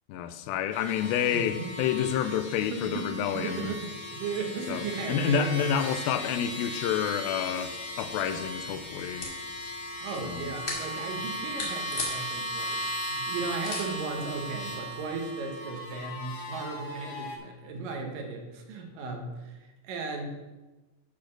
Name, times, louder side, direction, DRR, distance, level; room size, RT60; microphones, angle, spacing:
voice 1, 0.1-3.7 4.7-9.3 10.2-10.5, left 8 dB, 85° left, 11 dB, 2.4 m, -29 dB
sound 1, 0.7-17.4, equal, 70° left, 0.9 m, -37 dB
voice 2, 1.3-1.7 2.7-3.1 3.3-5.7 10.0-20.3, right 4 dB, 70° right, 3 dB, 2.6 m, -36 dB
sound 2, 7.9-15.2, left 3 dB, 40° left, 2.1 m, -41 dB
11.5 x 4.1 x 6.4 m, 1.1 s
omnidirectional pair, 4.2 m